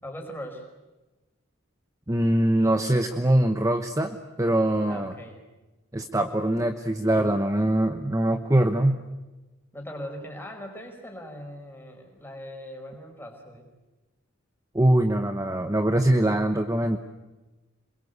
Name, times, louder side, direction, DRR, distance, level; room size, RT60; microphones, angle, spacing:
voice 1, 0.0-0.7 4.8-5.4 9.7-13.7, equal, 10° left, 1 dB, 5.1 m, -40 dB
voice 2, 2.1-5.1 5.9-9.0 14.7-17.0, right 1 dB, 15° right, 6 dB, 1.0 m, -23 dB
27.5 x 22.0 x 8.2 m, 1.1 s
head